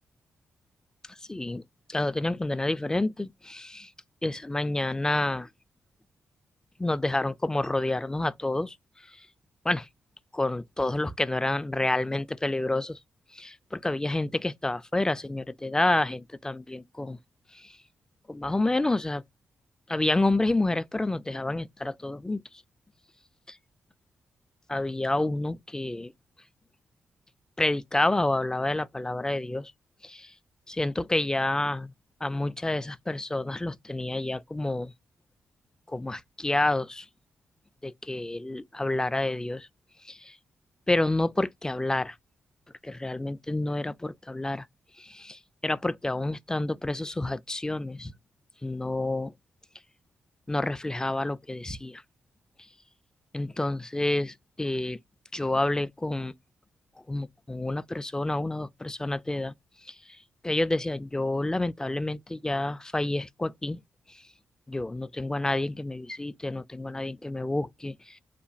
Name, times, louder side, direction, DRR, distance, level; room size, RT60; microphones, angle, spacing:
voice 1, 1.3-1.6 1.9-3.9 4.2-5.5 6.8-8.8 9.6-9.9 10.3-13.0 13.3-17.2 17.5-17.8 18.3-19.2 19.9-22.4 23.5-23.6 24.7-26.1 27.6-29.7 30.0-30.3 30.7-31.9 32.2-34.9 35.9-37.1 37.8-39.7 40.0-40.4 40.9-42.2 42.8-44.7 45.0-48.1 48.6-49.3 50.5-52.0 53.3-55.0 55.3-56.3 57.1-59.5 59.9-60.0 60.4-63.8 64.1-64.2 64.7-68.2, left 2 dB, 15° left, 0.3 m, -29 dB
3.0 x 2.1 x 2.5 m
supercardioid pair, 45°, 5 cm